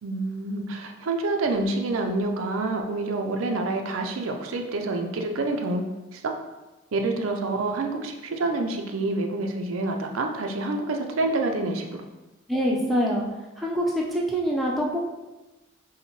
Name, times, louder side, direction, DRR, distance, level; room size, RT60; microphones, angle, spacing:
voice 1, 0.0-5.8 6.1-6.3 6.9-12.0, right 2 dB, 90° right, 3 dB, 0.5 m, -27 dB
voice 2, 12.5-13.2 13.6-15.0, equal, ahead, -3 dB, 0.4 m, -25 dB
5.5 x 2.1 x 3.0 m, 1.1 s
head